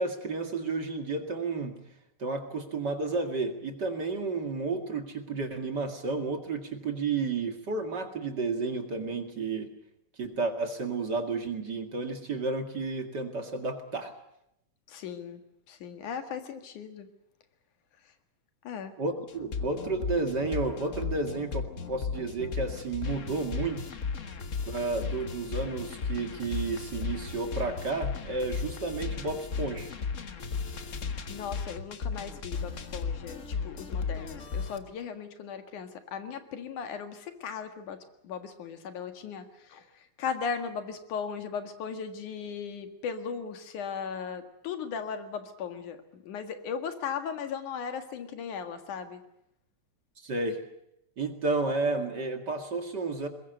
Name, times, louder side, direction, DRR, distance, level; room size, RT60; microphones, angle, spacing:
voice 1, 0.0-1.7 2.2-9.7 10.2-14.1 19.0-23.8 24.6-29.9 50.2-50.6 51.2-53.3, right 3 dB, 35° right, 5 dB, 2.4 m, -32 dB
voice 2, 14.9-17.1 18.6-18.9 31.3-39.8 40.2-49.2, left 6 dB, 90° left, 7 dB, 3.3 m, -37 dB
sound 1, 19.3-34.8, left 5 dB, 60° left, 0.7 m, -35 dB
22.0 x 21.0 x 8.0 m, 0.82 s
omnidirectional pair, 3.4 m